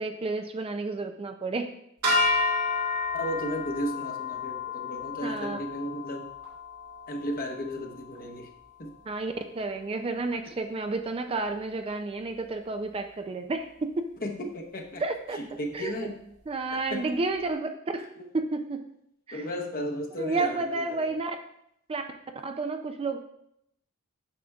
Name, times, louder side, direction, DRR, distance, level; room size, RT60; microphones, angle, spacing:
voice 1, 0.0-1.7 5.2-5.6 9.1-14.1 15.0-15.4 15.7-16.1 16.5-18.1 18.3-18.8 19.3-19.5 20.2-21.4 21.9-22.0 22.4-23.2, right 3 dB, 25° right, 6 dB, 0.4 m, -31 dB
sound 1, 2.0-8.4, left 3 dB, 85° right, 2.6 m, -31 dB
voice 2, 3.1-6.3 7.1-8.5 8.8-8.9 14.2-15.0 15.3-16.2 16.7-17.1 18.2-18.3 19.3-21.1, equal, 40° left, 2 dB, 0.9 m, -34 dB
8.5 x 6.5 x 2.3 m, 0.77 s
head